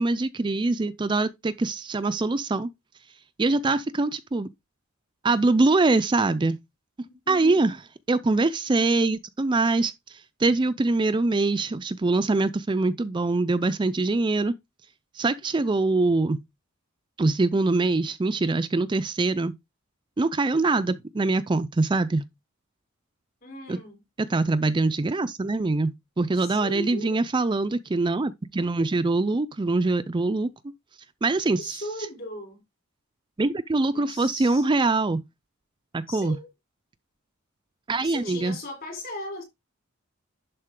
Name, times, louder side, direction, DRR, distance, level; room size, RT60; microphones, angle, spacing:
voice 1, 0.0-2.7 3.4-4.5 5.2-6.6 7.3-7.8 8.1-14.5 15.1-16.4 17.2-19.5 20.2-22.2 23.7-23.8 24.2-30.5 31.2-31.8 33.4-35.2 35.9-36.4 37.9-38.6, right 3 dB, 20° right, 0.4 m, -23 dB
voice 2, 7.0-7.6 23.4-24.0 26.4-27.2 31.5-32.6 33.9-34.7 36.1-36.5 38.0-39.4, left 1 dB, 45° left, 3.7 m, -38 dB
11.0 x 4.2 x 3.7 m
head